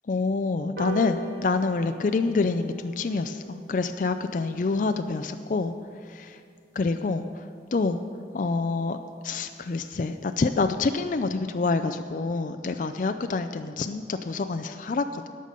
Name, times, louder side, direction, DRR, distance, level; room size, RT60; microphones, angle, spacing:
voice 1, 0.1-5.7 6.1-6.4 6.8-7.4 7.7-8.0 8.3-9.0 9.2-15.3, left 3 dB, 45° left, 8 dB, 0.4 m, -27 dB
sound 1, 0.8-7.5 7.9-8.0 8.3-8.5 8.7-8.8 9.1-9.2 9.5-9.8 10.2-10.3, right 3 dB, 65° right, 2.0 m, -43 dB
17.5 x 6.6 x 5.3 m, 2.2 s
head